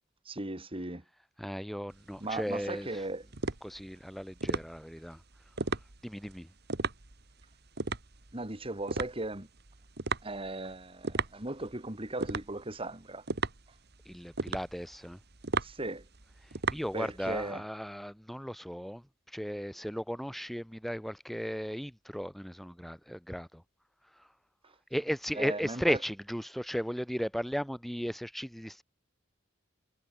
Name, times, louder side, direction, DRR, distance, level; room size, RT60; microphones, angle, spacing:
voice 1, 0.3-1.0 2.2-3.2 8.3-9.5 10.2-13.2 15.6-16.1 16.9-17.6 24.6-24.7 25.4-26.0, right 2 dB, 25° right, 2.1 m, -37 dB
voice 2, 1.4-3.0 3.6-5.2 6.0-6.5 14.1-15.2 16.7-19.0 19.3-23.6 24.9-28.8, equal, ahead, 1.7 m, -35 dB
sound 1, 1.9-17.5, right 3 dB, 55° right, 1.9 m, -36 dB
head